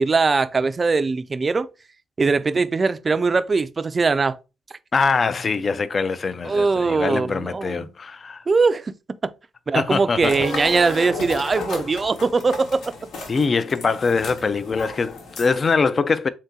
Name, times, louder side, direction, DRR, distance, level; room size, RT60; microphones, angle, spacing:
voice 1, 0.0-1.7 2.2-4.4 6.4-7.9 8.5-8.9 9.2-9.3 9.7-12.8, right 4 dB, 30° right, 0.4 m, -21 dB
voice 2, 4.9-8.4 9.7-10.3 13.3-16.3, left 4 dB, 35° left, 0.4 m, -23 dB
sound 1, 10.2-15.7, left 3 dB, 75° left, 1.1 m, -33 dB
3.6 x 2.7 x 3.6 m
cardioid pair, 90°, 0 cm